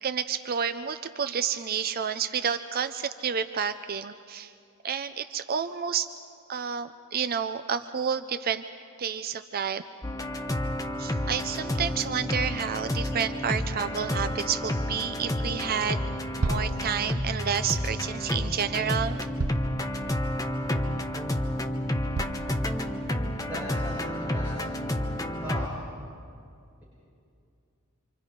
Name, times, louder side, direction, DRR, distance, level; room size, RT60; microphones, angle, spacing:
voice 1, 0.0-4.5 4.8-6.1 6.5-8.6 9.0-9.8 11.0-16.0 16.3-19.2, right 7 dB, 40° right, 10 dB, 0.5 m, -30 dB
sound 1, 10.0-25.7, left 1 dB, 15° left, 1.0 m, -30 dB
sound 2, 16.4-16.7 18.3-18.4 19.4-19.7 20.3-20.4 21.0-21.1 22.1-22.5, right 3 dB, 80° right, 0.9 m, -30 dB
voice 2, 23.5-24.9 25.4-25.8, equal, 10° right, -10 dB, 7.5 m, -38 dB
27.5 x 26.0 x 5.3 m, 2.4 s
head